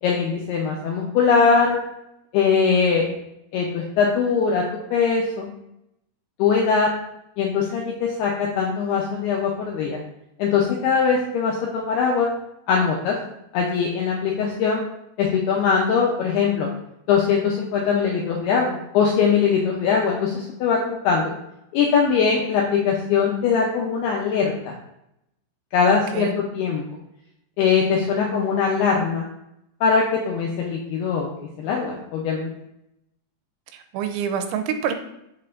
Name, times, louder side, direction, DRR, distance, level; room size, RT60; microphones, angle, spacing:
voice 1, 0.0-1.8 2.3-3.0 3.5-4.6 4.9-5.5 6.4-6.9 7.4-10.0 10.4-12.3 12.7-13.2 13.5-14.8 15.2-16.7 17.1-21.3 21.7-24.7 25.7-26.8 27.6-29.3 29.8-31.3 31.6-32.5, left 6 dB, 80° left, -1 dB, 2.3 m, -21 dB
voice 2, 25.9-26.5 33.7-34.9, right 7 dB, 85° right, 6 dB, 3.0 m, -27 dB
7.7 x 6.5 x 2.6 m, 0.81 s
omnidirectional pair, 5.5 m